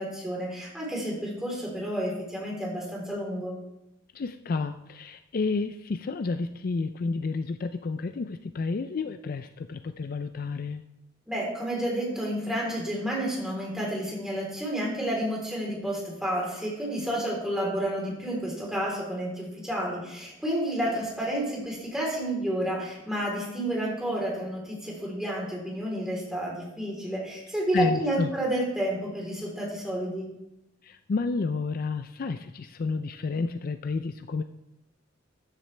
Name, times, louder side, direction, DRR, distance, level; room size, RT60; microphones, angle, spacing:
voice 1, 0.0-3.6 11.3-30.3, right 1 dB, 5° right, -4 dB, 3.6 m, -30 dB
voice 2, 4.1-10.8 27.7-28.3 30.8-34.4, left 4 dB, 50° left, 9 dB, 0.4 m, -30 dB
13.5 x 10.5 x 3.3 m, 0.90 s
head